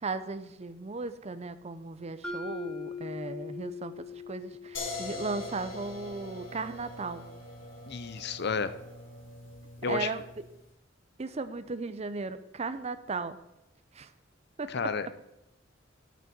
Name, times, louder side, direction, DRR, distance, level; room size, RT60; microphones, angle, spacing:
voice 1, 0.0-7.2 9.9-10.2 11.2-13.4 13.9-14.1 14.6-14.7, right 3 dB, 35° right, 12 dB, 0.6 m, -36 dB
Mallet percussion, 2.2-6.3, left 4 dB, 5° left, 0.9 m, -41 dB
sound 1, 4.7-10.6, left 2 dB, 75° left, 2.8 m, -42 dB
voice 2, 7.9-8.7 9.8-10.1 14.7-15.2, left 5 dB, 55° left, 13 dB, 0.6 m, -31 dB
8.8 x 6.1 x 7.0 m, 0.88 s
head